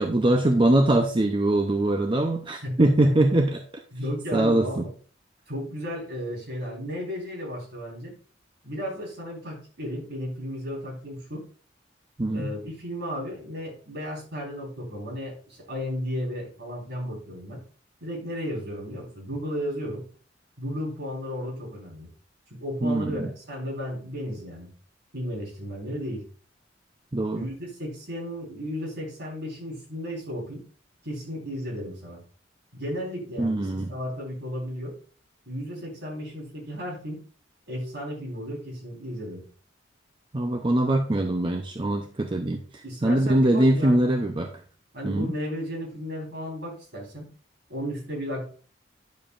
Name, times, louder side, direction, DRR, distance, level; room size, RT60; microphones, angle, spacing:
voice 1, 0.0-3.6 4.3-4.8 12.2-12.5 22.8-23.3 27.1-27.4 33.4-33.9 40.3-44.5 45.0-45.3, right 1 dB, 25° right, 4 dB, 0.6 m, -22 dB
voice 2, 2.6-3.1 3.9-4.9 5.5-8.1 8.6-11.4 12.3-17.6 18.0-20.0 20.6-22.1 22.5-24.7 25.1-26.2 27.3-30.6 31.0-32.2 32.7-34.9 35.5-37.2 37.7-39.4 42.8-44.0 44.9-47.3 47.7-48.4, equal, 60° right, -2 dB, 3.9 m, -34 dB
10.5 x 7.1 x 2.5 m, 0.40 s
head